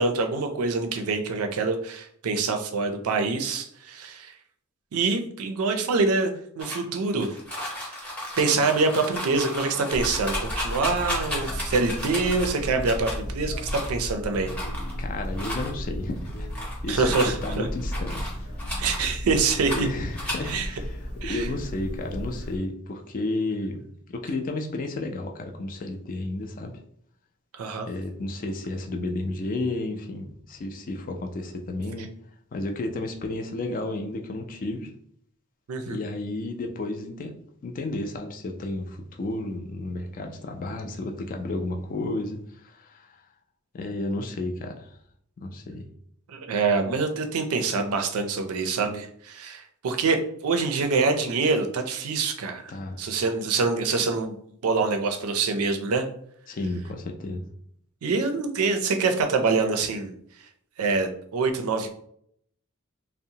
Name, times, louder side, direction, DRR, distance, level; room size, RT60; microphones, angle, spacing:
voice 1, 0.0-4.3 4.9-7.3 8.4-14.5 16.9-17.7 18.8-19.9 20.5-20.7 21.2-21.5 27.5-27.9 35.7-36.0 46.3-52.6 53.0-54.4 54.6-56.1 58.0-60.1 60.8-61.9, right 4 dB, 80° right, 5 dB, 0.4 m, -25 dB
sound 1, 6.6-13.2 13.6-14.1 14.4-15.0 15.3-15.7 16.2-16.8 17.1-19.0 19.3-19.9 20.1-20.5, left 1 dB, 5° left, 0.7 m, -34 dB
sound 2, 9.9-22.6, equal, 80° left, 0.6 m, -34 dB
voice 2, 15.0-16.5 16.8-18.3 18.7-18.8 19.7-26.7 27.9-32.1 32.5-34.9 35.8-43.2 43.7-44.9 45.4-45.9 52.7-53.0 56.5-57.5, left 2 dB, 40° left, 4 dB, 0.3 m, -32 dB
2.7 x 2.0 x 2.7 m, 0.67 s
head